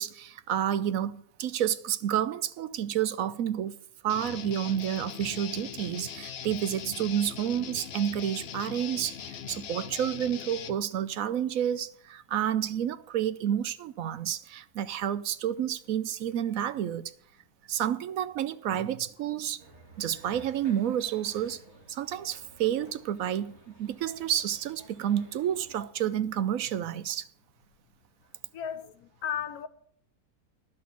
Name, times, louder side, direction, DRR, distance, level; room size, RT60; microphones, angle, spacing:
voice 1, 0.0-3.8 4.0-17.1 17.7-19.6 20.0-21.6 21.9-27.3, right 10 dB, 70° right, 1.0 m, -30 dB
Guitar, 4.1-10.8, left 8 dB, 55° left, 0.8 m, -40 dB
sound 1, 19.6-25.9, right 2 dB, 45° right, 2.8 m, -54 dB
voice 2, 28.5-29.7, left 8 dB, 85° left, 1.3 m, -36 dB
11.0 x 6.2 x 8.3 m
omnidirectional pair, 1.6 m